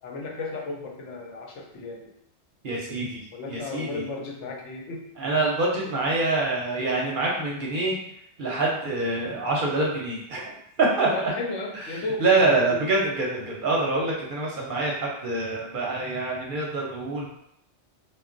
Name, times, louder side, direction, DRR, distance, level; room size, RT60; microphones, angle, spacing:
voice 1, 0.0-2.1 3.3-5.1 5.9-6.0 11.1-12.2 12.5-12.8 14.2-14.3, left 3 dB, 85° left, -1 dB, 1.0 m, -34 dB
voice 2, 2.6-3.2 3.5-4.0 5.2-7.9 8.4-10.4 10.8-11.1 12.2-17.3, right 2 dB, 55° right, -3 dB, 0.7 m, -25 dB
2.2 x 2.1 x 3.7 m, 0.76 s
omnidirectional pair, 1.2 m